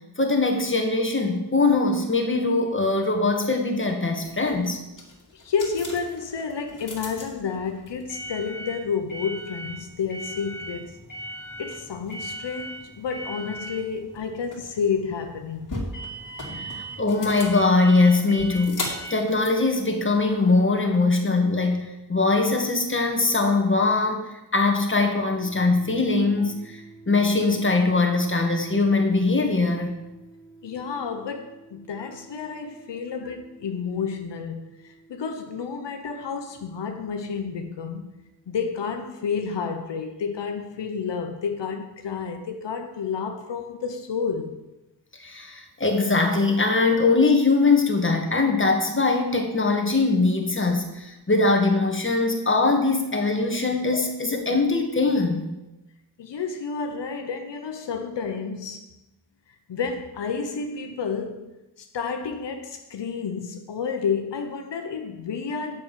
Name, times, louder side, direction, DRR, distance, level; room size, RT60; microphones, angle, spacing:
voice 1, 0.2-4.8 16.5-26.8 27.1-29.9 45.2-55.6, left 3 dB, 30° left, 1.9 m, -22 dB
sound 1, 4.2-20.6, equal, 50° left, 2.5 m, -38 dB
voice 2, 5.3-11.0 11.6-15.8 30.6-38.1 38.5-44.6 56.2-58.9 59.7-65.8, left 5 dB, 85° left, 0.9 m, -30 dB
sound 2, 25.4-39.3, right 3 dB, 5° left, 2.5 m, -51 dB
7.6 x 6.0 x 7.5 m
cardioid pair, 55°, 41 cm